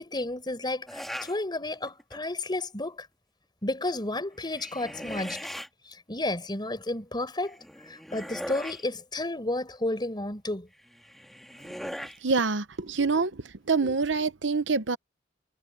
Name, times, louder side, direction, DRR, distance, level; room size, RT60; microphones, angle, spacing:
voice 1, 0.0-3.1 3.6-5.4 6.1-7.6 7.9-10.7 13.0-13.2 13.8-13.9, left 2 dB, 25° left, 4.6 m, -32 dB
sound 1, 0.9-1.4 1.9-2.3 4.3-5.7 7.4-8.9 10.8-12.2, equal, ahead, 1.8 m, -39 dB
voice 2, 12.2-13.3 13.7-15.0, right 4 dB, 75° right, 0.9 m, -25 dB
head